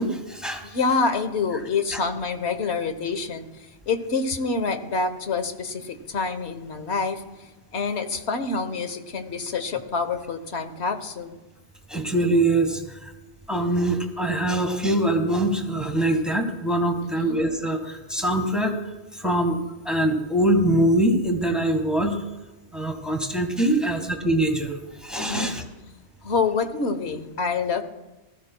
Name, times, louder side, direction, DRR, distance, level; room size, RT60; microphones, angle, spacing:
voice 1, 0.0-0.7 1.9-2.0 11.9-13.1 13.5-18.8 19.1-19.6 19.8-22.2 22.7-25.6, right 1 dB, ahead, 4 dB, 1.4 m, -23 dB
voice 2, 0.6-11.4 17.1-17.4 25.3-25.6 26.2-27.8, left 4 dB, 60° left, 8 dB, 1.3 m, -27 dB
19.0 x 14.0 x 2.2 m, 1.1 s
omnidirectional pair, 1.3 m